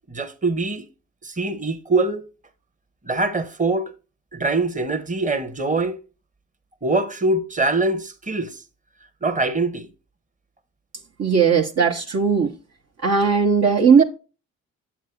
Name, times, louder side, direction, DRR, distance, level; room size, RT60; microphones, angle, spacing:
voice 1, 0.1-0.9 1.2-2.3 3.0-3.9 4.3-6.0 6.8-8.6 9.2-9.9, right 3 dB, 25° right, 1.3 m, -23 dB
voice 2, 11.2-12.5 13.0-14.0, right 6 dB, 50° right, 1.1 m, -17 dB
7.8 x 7.3 x 2.4 m
supercardioid pair, 55°, 33 cm